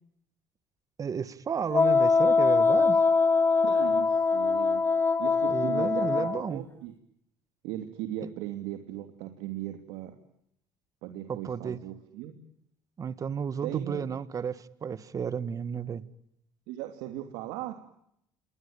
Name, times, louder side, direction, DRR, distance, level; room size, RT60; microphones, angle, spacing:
voice 1, 1.0-3.0 5.5-6.7 11.3-11.8 13.0-16.0, right 7 dB, 35° right, 14 dB, 2.0 m, -33 dB
Wind instrument woodwind instrument, 1.7-6.4, left 4 dB, 25° left, 2.6 m, -23 dB
voice 2, 3.6-4.8 5.2-6.9 7.6-10.1 11.0-12.4 13.6-14.0 16.7-17.7, right 13 dB, 80° right, 6 dB, 2.9 m, -38 dB
28.5 x 21.5 x 8.9 m, 0.77 s
supercardioid pair, 80°, 9 cm